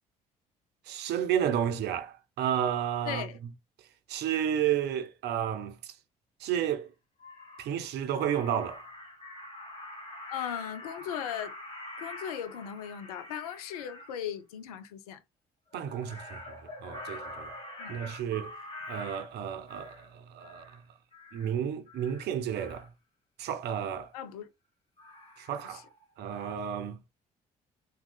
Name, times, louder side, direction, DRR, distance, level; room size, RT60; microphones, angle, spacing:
voice 1, 0.9-3.3 4.1-5.9 6.4-6.9 7.6-8.8 15.7-17.5 17.9-18.5 18.9-20.8 21.3-22.9 23.4-24.1 25.4-25.8 26.2-27.0, right 9 dB, 60° right, 0.7 m, -32 dB
voice 2, 3.0-3.4 10.3-11.5 12.0-15.2 17.8-18.0 24.1-24.5 25.6-25.8, left 9 dB, 80° left, 0.5 m, -37 dB
Crow, 6.7-6.8 7.2-7.7 8.1-14.2 15.7-20.1 20.4-20.8 21.1-21.5 21.9-22.9 23.6-24.0 25.0-26.0 26.3-26.6, left 1 dB, 30° left, 1.7 m, -45 dB
3.6 x 2.7 x 2.3 m
hypercardioid pair, 50°, 19 cm